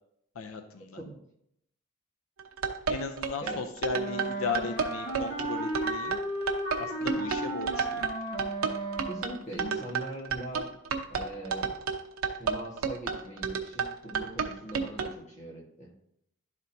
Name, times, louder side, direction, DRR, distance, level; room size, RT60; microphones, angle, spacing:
voice 1, 0.4-1.0 2.9-6.2 6.8-8.0, left 4 dB, 80° left, 6 dB, 0.5 m, -36 dB
sound 1, 2.4-15.1, right 5 dB, 85° right, 0.8 m, -31 dB
Wind instrument woodwind instrument, 3.9-9.5, right 1 dB, 50° left, 1.5 m, -34 dB
voice 2, 9.1-10.7 11.1-11.7 12.4-15.9, right 1 dB, 35° left, -1 dB, 1.4 m, -41 dB
11.5 x 4.3 x 2.7 m, 0.76 s
head